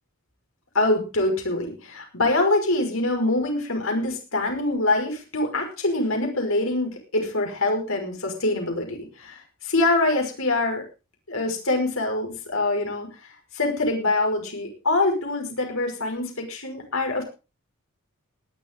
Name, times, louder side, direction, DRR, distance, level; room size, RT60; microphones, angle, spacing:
voice 1, 0.7-10.8 11.3-13.1 13.5-17.2, left 2 dB, 65° left, 3 dB, 5.5 m, -24 dB
19.5 x 11.5 x 3.8 m, 0.32 s
head